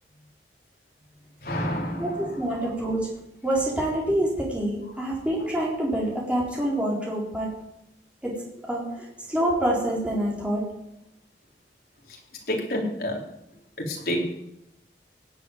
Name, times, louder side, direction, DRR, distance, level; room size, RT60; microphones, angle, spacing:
voice 1, 1.4-2.4 12.1-12.2 12.5-13.2 13.8-14.3, left 1 dB, 55° left, 0 dB, 3.9 m, -29 dB
voice 2, 2.0-3.1 3.4-7.5 8.2-8.3 8.7-8.8 9.3-10.6, right 1 dB, 5° right, -4 dB, 4.2 m, -26 dB
17.5 x 8.3 x 9.4 m, 0.82 s
head